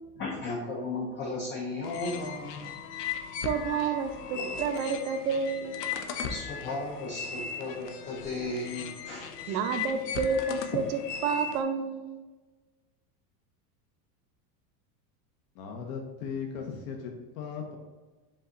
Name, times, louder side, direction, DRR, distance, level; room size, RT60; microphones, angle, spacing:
voice 1, 0.2-2.8 4.3-5.0 6.0-9.6, left 2 dB, 25° left, 0 dB, 0.4 m, -36 dB
sound 1, 1.8-11.6, left 7 dB, 90° left, 0.7 m, -38 dB
voice 2, 3.4-5.8 9.5-12.2, right 5 dB, 65° right, 7 dB, 0.7 m, -30 dB
voice 3, 15.5-17.8, left 6 dB, 55° left, 2 dB, 0.8 m, -37 dB
5.3 x 2.3 x 3.8 m, 1.2 s
supercardioid pair, 130°, 46 cm